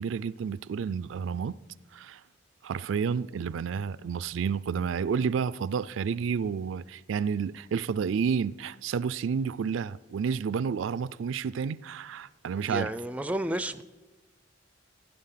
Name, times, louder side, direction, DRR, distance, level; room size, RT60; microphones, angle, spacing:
voice 1, 0.0-1.5 1.9-2.2 2.6-12.9, right 6 dB, 80° right, 0.4 m, -30 dB
voice 2, 12.6-13.8, right 1 dB, 5° right, 0.4 m, -32 dB
15.5 x 10.5 x 5.8 m
head